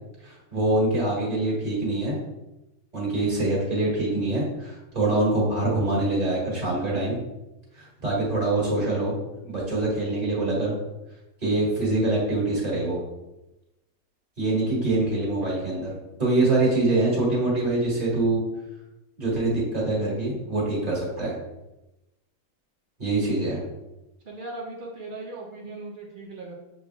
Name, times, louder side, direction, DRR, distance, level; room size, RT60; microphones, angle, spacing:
voice 1, 0.2-2.2 2.9-7.2 7.7-9.1 9.4-10.7 11.4-13.0 14.4-15.9 16.2-18.4 19.2-21.3 23.0-23.6, right 2 dB, 25° right, -6 dB, 1.6 m, -24 dB
voice 2, 24.2-26.6, right 2 dB, 55° right, -1 dB, 0.6 m, -38 dB
6.6 x 3.1 x 2.3 m, 0.98 s
omnidirectional pair, 1.6 m